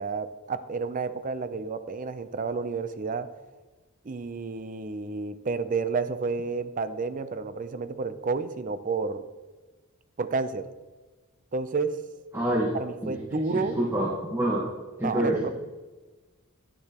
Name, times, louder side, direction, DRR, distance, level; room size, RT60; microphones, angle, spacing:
voice 1, 0.0-3.3 4.0-9.2 10.2-10.7 11.5-12.0 12.7-13.8 15.0-15.5, right 4 dB, 40° right, 12 dB, 0.5 m, -30 dB
voice 2, 12.3-12.7 13.0-14.6 15.0-15.5, right 1 dB, 15° right, -4 dB, 1.3 m, -27 dB
9.8 x 9.6 x 2.9 m, 1.3 s
head